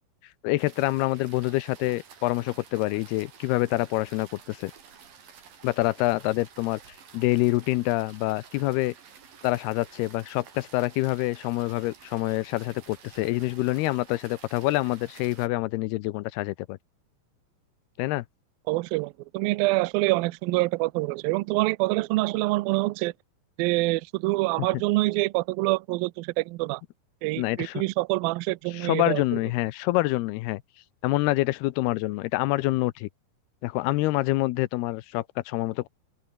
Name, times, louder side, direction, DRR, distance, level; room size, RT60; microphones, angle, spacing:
voice 1, 0.4-4.7 5.6-6.8 7.1-8.9 9.4-16.8 18.0-18.3 27.4-27.8 28.7-30.6 31.0-33.1 33.6-35.9, left 18 dB, 85° left, 2.6 m, -26 dB
sound 1, 0.6-15.5, right 7 dB, 60° right, 5.3 m, -51 dB
voice 2, 18.7-23.1 23.6-26.8 27.2-29.2, right 22 dB, 80° right, 2.2 m, -26 dB
omnidirectional pair, 4.8 m